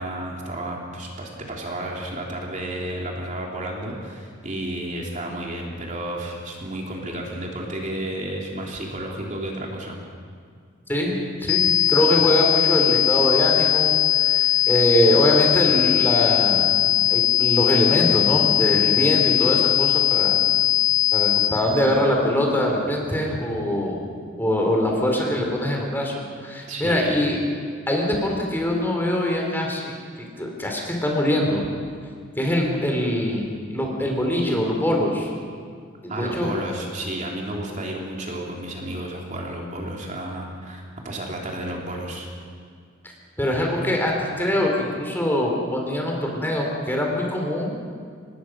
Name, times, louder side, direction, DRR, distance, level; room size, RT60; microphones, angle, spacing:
voice 1, 0.0-10.0 26.7-27.2 36.1-42.3, right 1 dB, 40° right, -1 dB, 3.2 m, -32 dB
voice 2, 10.9-16.8 17.1-20.4 21.1-24.0 24.4-27.4 27.9-29.9 30.4-31.6 32.4-35.3 36.0-36.5 43.4-47.7, equal, 10° left, 0 dB, 4.0 m, -23 dB
sound 1, 11.5-21.5, left 12 dB, 80° left, 5.5 m, -20 dB
25.5 x 20.0 x 6.3 m, 2.1 s
head